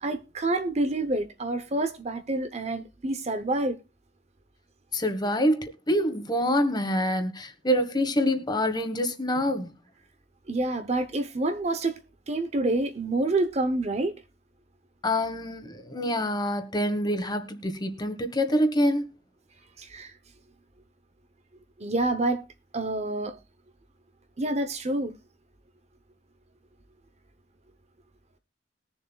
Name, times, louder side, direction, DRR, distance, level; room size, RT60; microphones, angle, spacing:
voice 1, 0.0-3.8 10.5-12.0 12.3-14.1 19.8-20.1 21.8-22.4 22.7-23.4 24.4-25.1, right 2 dB, 35° right, 0.8 m, -27 dB
voice 2, 4.9-9.7 15.0-19.0, equal, 25° left, 1.3 m, -26 dB
21.0 x 7.1 x 2.3 m
head